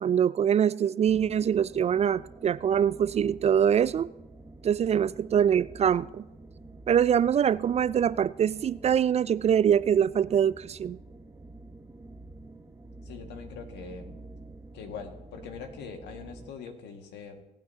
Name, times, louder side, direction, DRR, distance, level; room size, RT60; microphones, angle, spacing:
voice 1, 0.0-4.1 4.6-6.2 6.9-11.0, right 8 dB, 35° right, 0.3 m, -24 dB
sound 1, 1.1-16.5, right 2 dB, 15° right, 1.1 m, -48 dB
voice 2, 13.1-14.1 14.7-17.4, left 5 dB, 70° left, 1.8 m, -42 dB
23.5 x 9.1 x 2.8 m
hypercardioid pair, 60°, 18 cm